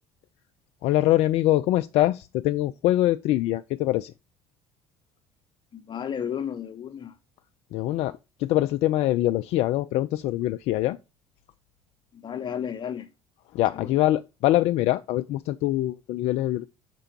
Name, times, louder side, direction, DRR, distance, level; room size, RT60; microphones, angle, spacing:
voice 1, 0.8-4.1 7.7-11.0 13.5-16.7, left 15 dB, 55° left, 0.4 m, -24 dB
voice 2, 5.7-7.1 12.1-13.1 13.7-14.0, left 8 dB, 35° left, 0.8 m, -33 dB
6.0 x 4.4 x 5.0 m
figure-of-eight pair, 60°, 13 cm